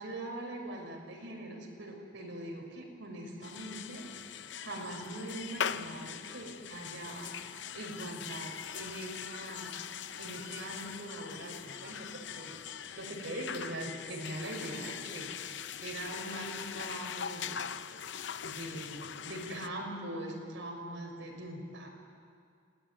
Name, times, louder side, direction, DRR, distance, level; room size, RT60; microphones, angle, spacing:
voice 1, 0.0-7.3 7.7-9.8 10.2-12.5 12.9-17.6 18.4-21.9, right 1 dB, 75° right, 0 dB, 5.9 m, -42 dB
sound 1, 3.4-19.7, left 8 dB, 65° left, 0.7 m, -41 dB
27.0 x 20.0 x 9.3 m, 2.3 s
head